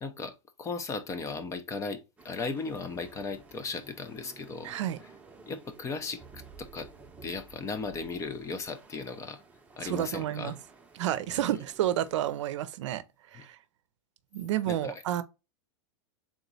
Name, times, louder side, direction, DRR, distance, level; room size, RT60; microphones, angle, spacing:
voice 1, 0.0-4.7 5.5-6.9 7.2-9.4 9.8-10.5 11.3-11.4 13.3-13.5 14.7-15.0, left 4 dB, 20° left, 0.6 m, -37 dB
sound 1, 2.2-12.6, right 4 dB, 10° right, 0.8 m, -54 dB
voice 2, 4.6-5.0 9.8-10.6 11.0-13.0 13.3-13.6 14.3-15.2, right 12 dB, 75° right, 0.5 m, -30 dB
3.7 x 2.9 x 3.9 m
hypercardioid pair, 125°, 16 cm